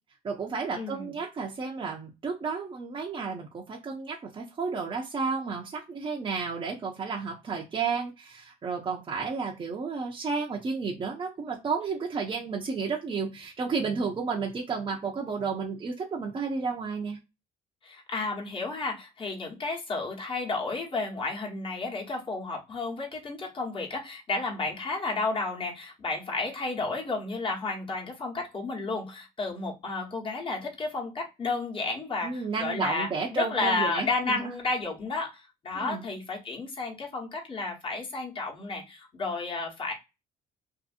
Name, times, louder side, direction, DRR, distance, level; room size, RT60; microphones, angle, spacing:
voice 1, 0.2-17.2 32.2-34.5 35.7-36.0, right 5 dB, 30° right, -2 dB, 0.6 m, -32 dB
voice 2, 0.8-1.2 17.8-39.9, left 3 dB, 30° left, -1 dB, 1.1 m, -32 dB
2.7 x 2.6 x 2.5 m, 0.24 s
cardioid pair, 110°, 17 cm